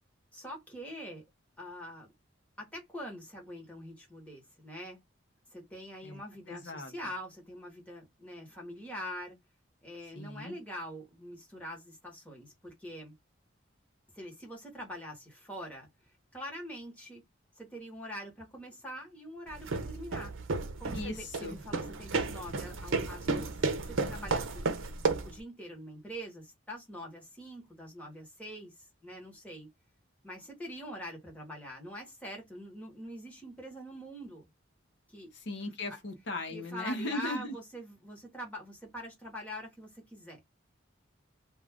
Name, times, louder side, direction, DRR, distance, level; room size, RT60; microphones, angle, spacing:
voice 1, 0.3-1.2 1.6-2.1 2.6-5.0 5.5-9.4 9.8-13.1 14.1-15.9 16.3-17.2 17.6-20.3 20.8-24.7 25.2-29.7 30.2-34.5 35.1-35.3 36.5-40.4, equal, 5° left, 1.1 m, -44 dB
voice 2, 6.5-7.1 10.1-10.6 20.9-21.6 35.3-37.6, left 2 dB, 60° left, 0.7 m, -38 dB
sound 1, 19.5-25.4, right 3 dB, 80° right, 0.6 m, -33 dB
2.4 x 2.3 x 3.4 m
head